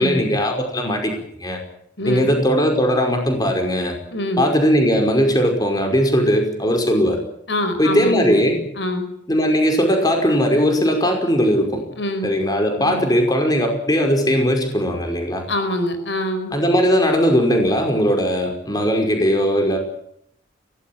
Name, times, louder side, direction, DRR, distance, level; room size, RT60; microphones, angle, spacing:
voice 1, 0.0-1.6 2.1-3.9 4.4-7.2 7.8-8.6 9.3-11.8 12.2-15.4 16.5-19.8, equal, 20° left, 3 dB, 5.4 m, -19 dB
voice 2, 2.0-2.4 4.1-4.5 7.5-9.1 12.0-12.3 12.7-13.1 15.5-16.6, left 1 dB, 75° left, 9 dB, 5.4 m, -25 dB
23.5 x 18.5 x 8.9 m, 0.70 s
head